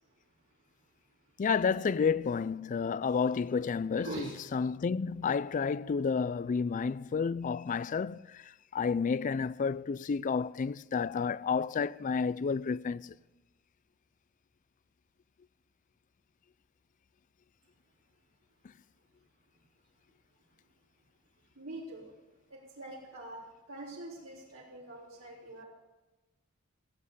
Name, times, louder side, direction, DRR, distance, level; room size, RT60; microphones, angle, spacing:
voice 1, 1.4-13.1, left 5 dB, 40° left, 0.3 m, -31 dB
voice 2, 4.0-4.3 21.6-22.1 22.5-25.7, right 2 dB, 80° right, 3.9 m, -44 dB
16.0 x 8.9 x 6.9 m
head